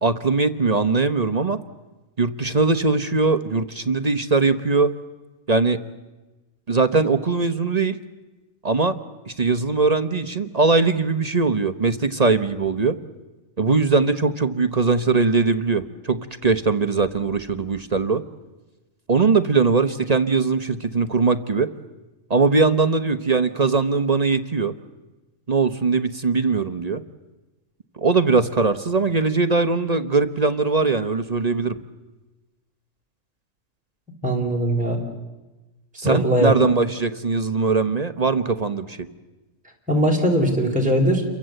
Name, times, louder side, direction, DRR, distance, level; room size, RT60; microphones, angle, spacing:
voice 1, 0.0-1.6 2.2-4.9 5.5-5.8 6.7-8.0 8.6-9.0 9.3-12.9 13.6-18.2 19.1-21.7 22.3-24.7 25.5-27.0 28.0-31.8 36.0-39.0, right 4 dB, 35° right, 11 dB, 0.9 m, -20 dB
voice 2, 34.2-35.0 36.0-36.7 39.9-41.3, equal, 5° right, 0 dB, 4.0 m, -20 dB
29.0 x 23.0 x 7.8 m, 1.1 s
omnidirectional pair, 1.4 m